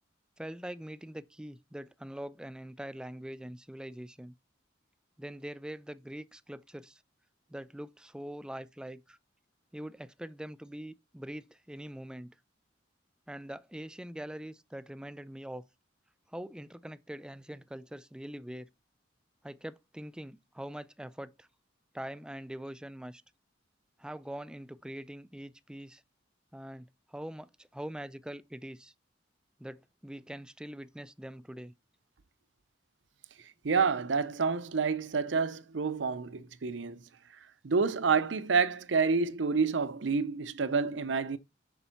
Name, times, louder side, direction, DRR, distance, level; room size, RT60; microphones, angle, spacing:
voice 1, 0.4-4.3 5.2-7.0 7.5-9.2 9.7-12.3 13.3-15.6 16.3-18.7 19.4-21.5 21.9-23.2 24.0-26.0 26.5-28.9 29.6-31.7, right 1 dB, 5° right, 0.4 m, -43 dB
voice 2, 33.6-37.0 37.6-41.4, right 5 dB, 70° right, 0.6 m, -28 dB
7.0 x 5.3 x 5.7 m
head